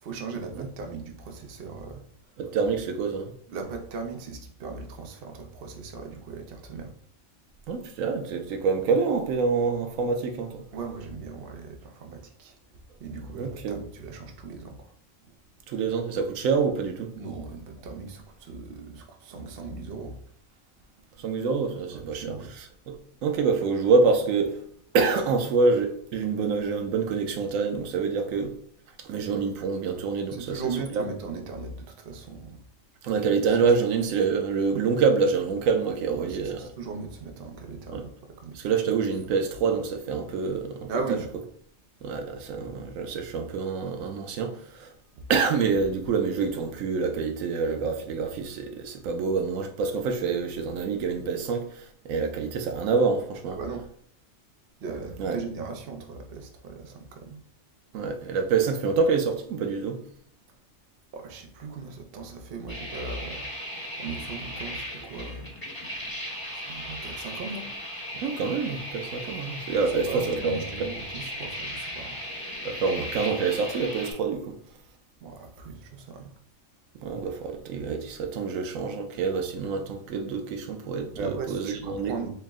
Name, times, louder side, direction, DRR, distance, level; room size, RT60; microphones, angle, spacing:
voice 1, 0.0-2.0 2.7-2.8 3.5-6.9 10.7-12.6 13.0-14.9 17.1-20.2 21.9-22.5 30.3-32.6 36.1-38.1 38.4-38.7 40.9-41.3 45.2-45.3 53.5-53.9 54.8-57.4 61.1-63.5 64.0-65.5 66.4-67.7 69.7-72.2 75.2-76.3 81.1-82.3, right 4 dB, 55° right, 0.7 m, -38 dB
voice 2, 2.4-3.3 7.7-10.6 13.4-13.8 15.7-17.1 21.2-24.6 24.9-28.5 29.0-30.6 30.9-31.0 33.0-36.7 37.9-38.0 38.5-40.9 42.0-44.9 45.3-53.6 55.2-55.4 57.9-60.0 68.1-70.9 72.6-74.6 77.0-82.1, right 5 dB, 90° right, 1.0 m, -26 dB
sound 1, 62.7-74.1, equal, 20° left, 1.0 m, -37 dB
4.4 x 2.1 x 3.5 m
omnidirectional pair, 1.4 m